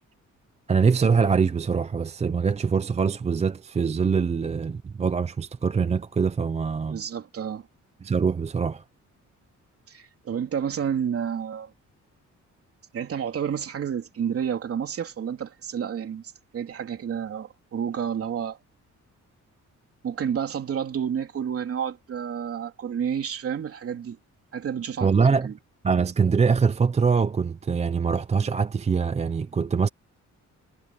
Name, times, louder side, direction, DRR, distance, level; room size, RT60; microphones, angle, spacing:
voice 1, 0.7-7.0 8.0-8.8 25.0-25.5 25.8-29.9, right 5 dB, 20° right, 0.5 m, -23 dB
voice 2, 6.9-7.7 9.9-11.7 12.9-18.6 20.0-24.2 24.5-25.1 25.4-25.5, right 8 dB, 50° right, 3.2 m, -30 dB
wide cardioid pair, 160°, 30 cm